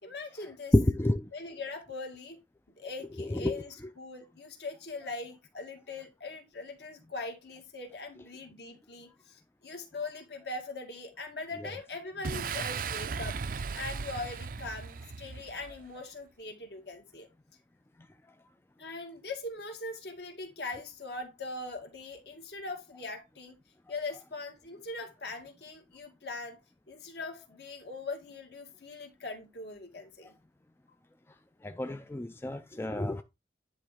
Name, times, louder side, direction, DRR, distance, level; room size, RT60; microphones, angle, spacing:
voice 1, 0.0-0.7 1.3-2.4 2.8-17.3 18.8-23.6 23.9-26.6 26.9-30.3, left 3 dB, 60° left, 2.1 m, -41 dB
voice 2, 0.7-1.2 3.4-3.5 31.6-33.2, left 1 dB, 15° left, 0.4 m, -28 dB
Boom, 12.2-15.9, right 5 dB, 45° right, 0.5 m, -37 dB
10.5 x 3.5 x 5.1 m
head